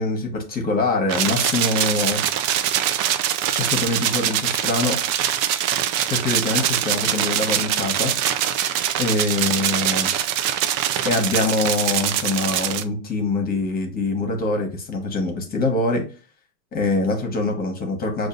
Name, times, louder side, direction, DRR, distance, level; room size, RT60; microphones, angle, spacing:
voice 1, 0.0-2.2 3.5-5.0 6.1-8.1 8.9-10.1 11.0-16.0 16.7-18.3, left 2 dB, 25° left, 3 dB, 1.2 m, -24 dB
sound 1, 1.1-12.8, right 10 dB, 45° right, 0.5 m, -23 dB
6.3 x 2.6 x 2.5 m, 0.36 s
supercardioid pair, 120°, 38 cm